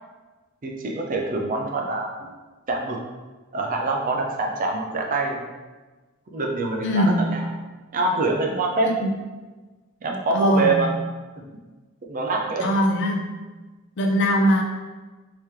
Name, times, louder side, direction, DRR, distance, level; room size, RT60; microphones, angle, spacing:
voice 1, 0.6-2.1 2.7-3.0 3.5-5.4 6.3-7.4 7.9-8.9 10.0-10.9 11.4-11.5 12.1-12.7, right 2 dB, 40° right, 1 dB, 0.5 m, -25 dB
voice 2, 6.8-7.2 8.9-9.1 10.3-10.8 12.6-13.3 14.0-14.6, equal, 55° left, 1 dB, 0.5 m, -21 dB
3.5 x 2.8 x 3.2 m, 1.2 s
head